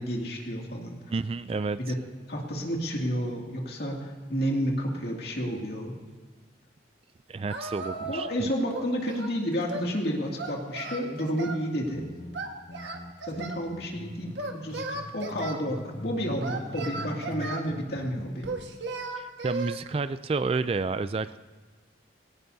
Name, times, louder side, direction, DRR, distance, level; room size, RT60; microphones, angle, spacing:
voice 1, 0.0-0.9 1.9-2.0 2.3-6.0 7.9-12.1 13.2-18.5, equal, 55° left, 0 dB, 2.4 m, -31 dB
voice 2, 1.1-1.8 7.3-8.5 19.2-21.4, right 4 dB, 30° right, 14 dB, 0.3 m, -30 dB
Singing, 7.5-8.4 8.7-9.9 10.4-11.6 12.3-13.6 14.3-15.6 16.4-17.7 18.4-19.8, right 3 dB, 70° right, 1.5 m, -36 dB
sound 1, 11.8-14.4 14.7-16.4 16.7-18.3, left 1 dB, 35° left, 0.7 m, -42 dB
18.5 x 17.5 x 2.7 m, 1.4 s
head